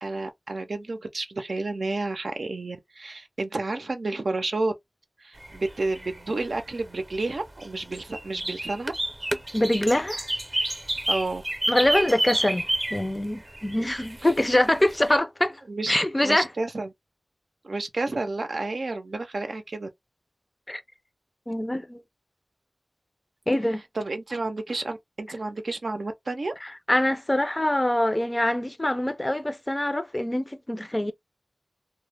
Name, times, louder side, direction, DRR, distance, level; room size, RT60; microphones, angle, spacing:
voice 1, 0.0-4.7 5.2-8.9 11.1-11.4 15.7-16.0 16.2-16.9 17.6-19.9 23.9-26.6, right 2 dB, 75° right, 0.5 m, -30 dB
sound 1, 5.4-15.1, right 1 dB, 30° right, 0.6 m, -31 dB
voice 2, 9.5-10.3 11.7-15.6 15.9-16.5 20.7-20.8 21.5-22.0 23.5-23.8 26.6-31.1, left 1 dB, 25° left, 0.4 m, -24 dB
2.1 x 2.0 x 3.2 m
wide cardioid pair, 45°, 0 cm